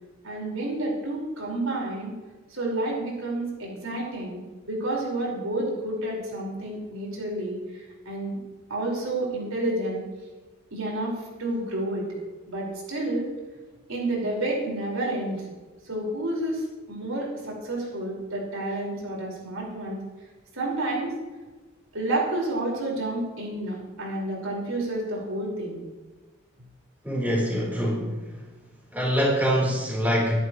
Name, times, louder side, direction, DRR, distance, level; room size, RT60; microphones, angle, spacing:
voice 1, 0.2-2.1 2.5-8.4 8.7-10.0 10.7-11.1 11.4-12.1 12.5-13.3 13.9-15.5 15.9-20.0 20.5-21.2 21.9-25.8, right 1 dB, 80° right, -3 dB, 5.4 m, -30 dB
voice 2, 27.0-28.3 28.9-30.3, equal, 10° right, -4 dB, 4.2 m, -24 dB
23.5 x 11.0 x 3.2 m, 1.2 s
head